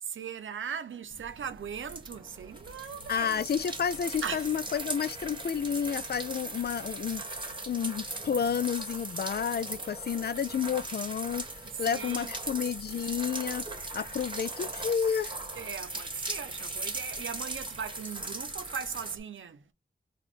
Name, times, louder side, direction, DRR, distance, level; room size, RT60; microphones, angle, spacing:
voice 1, 0.0-3.5 4.2-4.6 11.6-12.3 15.6-19.7, right 7 dB, 90° right, 0.6 m, -39 dB
sound 1, 1.1-19.2, right 2 dB, 25° right, 1.2 m, -39 dB
voice 2, 3.1-13.6 13.9-15.3, left 7 dB, 55° left, 0.4 m, -31 dB
4.0 x 2.4 x 3.1 m
wide cardioid pair, 75°, 20 cm